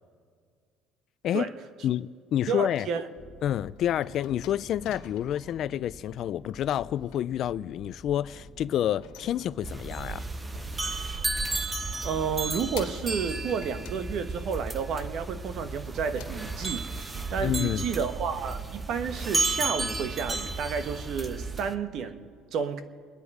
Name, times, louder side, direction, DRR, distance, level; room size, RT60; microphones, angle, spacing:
voice 1, 1.8-2.9 3.4-10.2 17.4-17.8, left 11 dB, 50° left, 0.3 m, -29 dB
voice 2, 2.5-3.1 12.0-16.9 17.3-22.8, right 6 dB, 50° right, 1.1 m, -31 dB
sound 1, 3.2-14.3, left 1 dB, 5° left, 1.6 m, -50 dB
sound 2, 3.4-5.6 6.6-7.3 8.6-9.9 10.3-11.2 11.5-13.3 13.6-14.7 15.3-15.9 16.2-17.2, left 8 dB, 80° left, 1.7 m, -49 dB
sound 3, 9.6-21.7, right 3 dB, 15° right, 0.7 m, -33 dB
29.0 x 10.5 x 4.9 m
cardioid pair, 145°, 0 cm